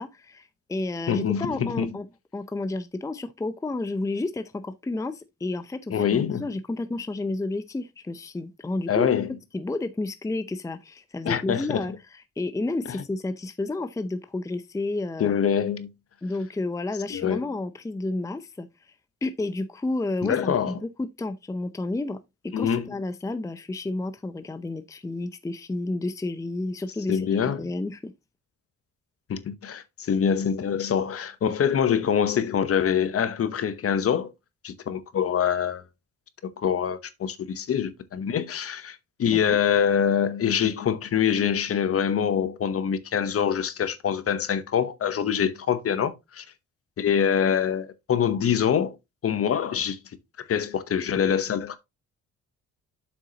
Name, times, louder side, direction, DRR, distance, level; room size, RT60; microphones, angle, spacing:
voice 1, 0.0-2.1 2.3-9.1 9.5-15.3 16.2-18.7 19.2-27.3 27.6-28.1 39.3-39.6, left 2 dB, 10° left, 0.6 m, -31 dB
voice 2, 1.1-1.9 5.9-6.4 8.9-9.3 11.2-11.8 15.2-15.9 17.1-17.4 20.2-20.8 22.5-22.9 27.1-27.6 29.3-34.3 34.6-35.8 36.6-46.4 47.0-49.0 49.2-50.0 50.5-51.8, left 8 dB, 50° left, 1.0 m, -25 dB
7.7 x 6.1 x 2.9 m
cardioid pair, 90°, 30 cm